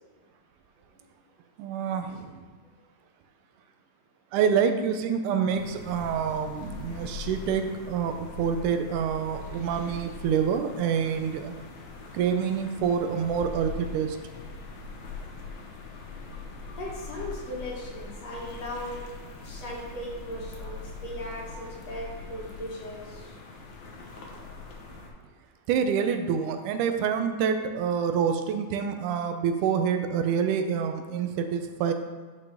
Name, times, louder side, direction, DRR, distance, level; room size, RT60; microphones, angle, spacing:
voice 1, 1.6-2.4 4.3-11.5 12.1-14.2 25.7-31.9, right 7 dB, 90° right, 7 dB, 2.2 m, -27 dB
sound 1, 5.5-25.1, left 4 dB, 75° left, 1.0 m, -42 dB
voice 2, 16.8-19.0 19.4-23.3 24.4-24.6, equal, 60° left, -4 dB, 2.6 m, -38 dB
10.5 x 5.3 x 3.4 m, 1.5 s
omnidirectional pair, 3.5 m